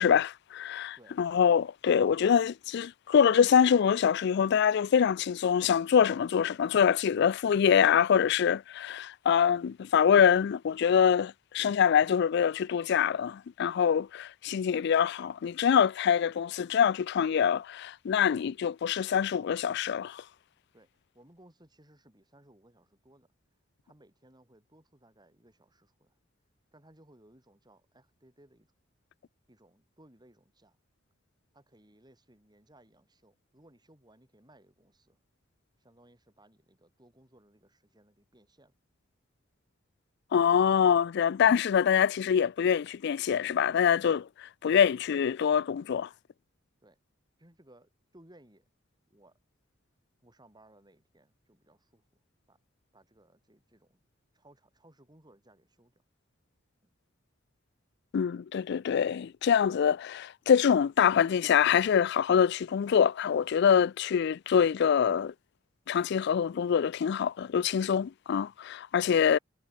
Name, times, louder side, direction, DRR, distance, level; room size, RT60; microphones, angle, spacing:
voice 1, 0.0-20.2 40.3-46.1 58.1-65.3 65.9-69.4, left 7 dB, 60° left, 0.3 m, -25 dB
voice 2, 20.7-23.3 23.8-26.2 26.7-28.7 29.5-30.8 31.5-35.2 35.8-38.8 46.8-47.0 47.4-48.7 49.1-49.4 50.2-52.0 52.5-52.6 52.9-54.0 54.3-56.0 56.8-56.9 69.0-69.4, right 1 dB, 20° right, 7.4 m, -61 dB
head